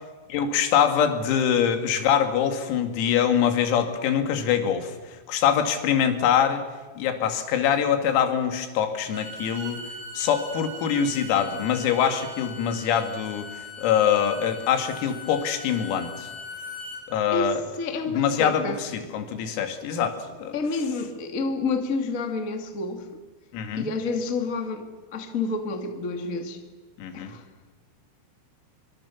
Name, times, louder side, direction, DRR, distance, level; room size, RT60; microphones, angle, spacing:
voice 1, 0.3-4.9 5.3-6.6 7.0-9.8 10.2-13.4 13.8-16.3 17.1-17.6 18.1-20.5 23.5-23.9 27.0-27.3, left 8 dB, 90° left, 6 dB, 4.9 m, -24 dB
Bowed string instrument, 9.0-17.0, left 2 dB, 25° right, 6.3 m, -40 dB
voice 2, 17.3-18.8 20.5-23.1 23.7-26.6 27.1-27.4, left 3 dB, 65° left, 4 dB, 0.8 m, -29 dB
25.5 x 23.5 x 7.2 m, 1.3 s
omnidirectional pair, 6.0 m